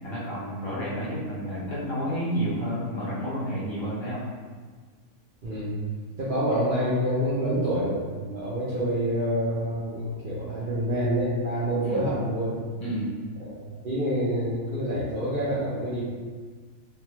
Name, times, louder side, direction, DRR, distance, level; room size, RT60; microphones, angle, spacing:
voice 1, 0.0-4.2 11.8-12.0 12.8-13.1, equal, 50° left, -8 dB, 0.3 m, -30 dB
voice 2, 5.4-5.8 6.2-12.6 13.4-13.6 13.8-16.0, equal, 85° right, -10 dB, 0.4 m, -27 dB
2.6 x 2.3 x 2.9 m, 1.5 s
omnidirectional pair, 1.6 m